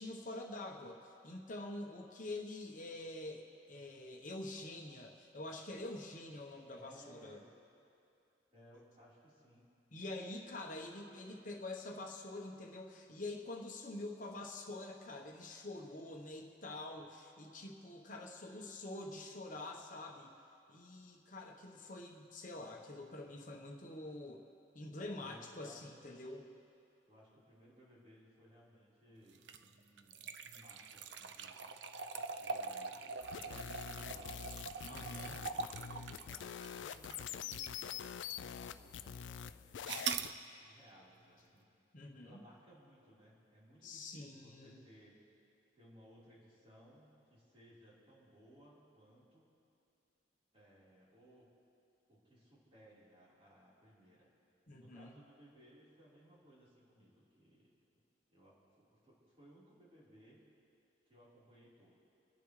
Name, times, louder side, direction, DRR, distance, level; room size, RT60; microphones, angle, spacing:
voice 1, 0.0-7.4 9.9-20.3 20.7-24.4 24.7-26.4 34.8-35.4 41.9-42.4 43.8-44.8 54.7-55.2, left 2 dB, 45° left, 1 dB, 1.1 m, -46 dB
voice 2, 6.8-7.5 8.5-9.7 25.2-26.4 27.1-31.6 32.3-41.7 42.2-45.1 45.8-49.5 50.5-51.5 52.1-54.3 54.7-57.7 58.3-60.5 61.1-62.0, equal, 30° right, -8 dB, 4.1 m, -62 dB
sound 1, 29.3-37.8 38.3-38.4 39.8-40.3, right 5 dB, 75° right, 0.6 m, -43 dB
sound 2, 33.2-40.3, left 8 dB, 85° left, 0.4 m, -45 dB
26.0 x 11.0 x 3.3 m, 2.5 s
head